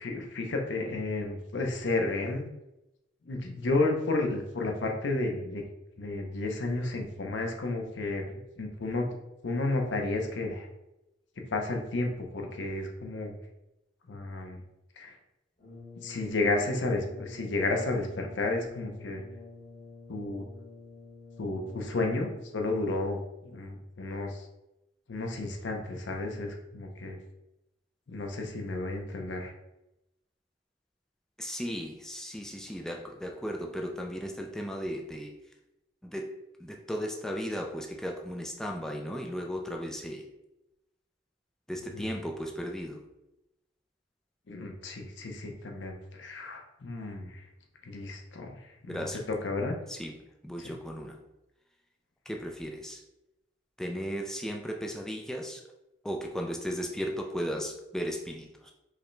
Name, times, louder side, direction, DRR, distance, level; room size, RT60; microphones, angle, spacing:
voice 1, 0.0-2.4 3.3-5.6 6.0-9.1 9.4-10.7 11.5-13.4 14.1-14.6 15.0-15.1 16.0-19.2 20.1-20.4 21.4-24.5 25.1-27.2 28.1-29.5 41.9-42.1 44.5-47.4 47.9-48.6 48.9-49.8 50.6-50.7, left 2 dB, 85° left, 2 dB, 0.6 m, -32 dB
Brass instrument, 15.6-22.7, left 4 dB, 45° left, 1.0 m, -49 dB
voice 2, 31.4-35.3 36.0-36.3 36.6-40.2 41.7-43.0 48.9-49.2 49.9-50.2 50.4-51.2 52.3-53.0 53.8-55.6 56.0-58.7, equal, 5° left, 1 dB, 0.3 m, -36 dB
4.7 x 2.2 x 3.1 m, 0.92 s
head